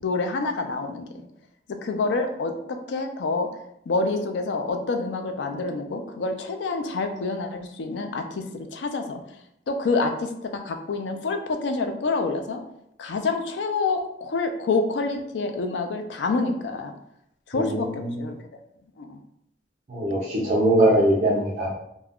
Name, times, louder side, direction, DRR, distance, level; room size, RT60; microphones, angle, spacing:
voice 1, 0.0-1.1 1.7-3.5 3.9-9.2 9.7-12.6 13.0-16.9 17.5-18.4 19.0-19.2, left 3 dB, 85° left, 5 dB, 0.4 m, -27 dB
voice 2, 17.5-18.1 19.9-21.7, right 1 dB, 45° right, -6 dB, 0.5 m, -21 dB
2.4 x 2.1 x 3.5 m, 0.77 s
head